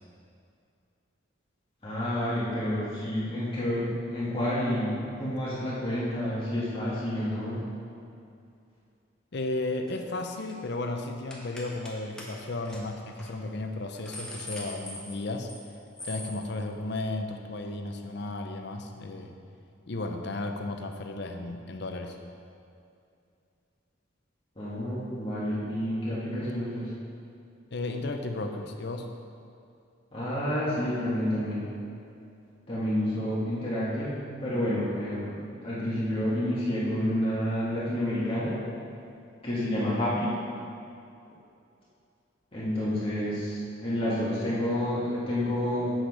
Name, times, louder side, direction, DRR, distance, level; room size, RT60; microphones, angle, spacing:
voice 1, 1.8-7.6 24.6-26.9 30.1-31.7 32.7-38.6 39.4-40.3 42.5-45.9, left 1 dB, 30° left, -9 dB, 1.6 m, -29 dB
voice 2, 9.3-15.5 16.0-19.4 19.9-22.2 27.7-29.1, left 2 dB, 60° left, 5 dB, 0.6 m, -34 dB
sound 1, 9.9-10.1 10.4-10.7 11.3-11.9 12.2-12.3 12.6-12.8 13.2-13.3 13.7-15.6 16.0-16.3, left 1 dB, 5° left, 1.1 m, -41 dB
7.9 x 6.5 x 4.8 m, 2.5 s
head